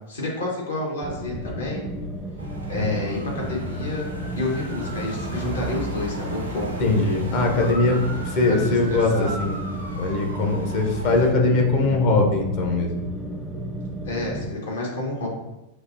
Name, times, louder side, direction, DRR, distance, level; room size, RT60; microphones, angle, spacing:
voice 1, 0.1-1.8 2.7-4.1 4.3-6.8 7.8-8.0 8.5-9.3 14.0-15.3, left 2 dB, 70° left, -3 dB, 1.2 m, -29 dB
sound 1, 1.0-14.5, right 1 dB, 5° left, 0.6 m, -33 dB
sound 2, 2.4-11.3, right 1 dB, 85° right, 0.7 m, -36 dB
voice 2, 6.8-9.1 9.4-9.6 10.0-13.1, left 3 dB, 45° left, 1 dB, 0.8 m, -21 dB
6.1 x 2.6 x 2.6 m, 0.97 s
figure-of-eight pair, 90°, 0 cm